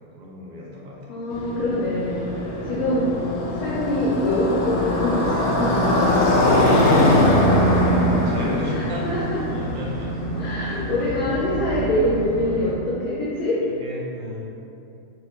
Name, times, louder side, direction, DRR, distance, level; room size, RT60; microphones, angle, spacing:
voice 1, 0.0-1.2 5.9-9.1 9.5-10.2 10.6-11.1 12.5-12.7 13.7-14.4, equal, 60° right, -4 dB, 0.5 m, -35 dB
voice 2, 1.1-2.3 2.6-3.1 3.5-7.0 7.7-7.8 8.7-9.4 10.4-13.6, left 1 dB, 80° left, -8 dB, 1.1 m, -25 dB
Motorcycle, 1.3-12.7, left 1 dB, 65° left, 0.6 m, -22 dB
4.1 x 2.1 x 2.8 m, 2.6 s
omnidirectional pair, 1.5 m